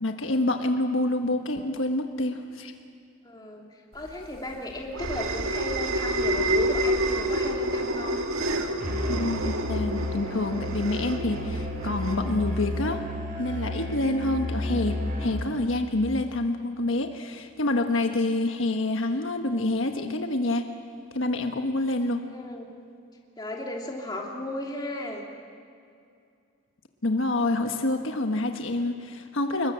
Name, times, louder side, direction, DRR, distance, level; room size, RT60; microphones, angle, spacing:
voice 1, 0.0-2.7 9.1-13.0 13.4-20.6 21.1-22.2 27.0-29.7, left 2 dB, 75° left, 5 dB, 1.4 m, -27 dB
voice 2, 3.2-3.7 3.9-8.2 13.7-13.8 22.3-22.7 23.4-25.2, left 1 dB, 20° left, -1 dB, 3.0 m, -35 dB
sound 1, 4.1-12.9, right 1 dB, 85° right, 2.0 m, -29 dB
Musical instrument, 8.8-15.6, left 1 dB, 45° right, 4.8 m, -32 dB
26.5 x 21.5 x 7.6 m, 2.4 s
head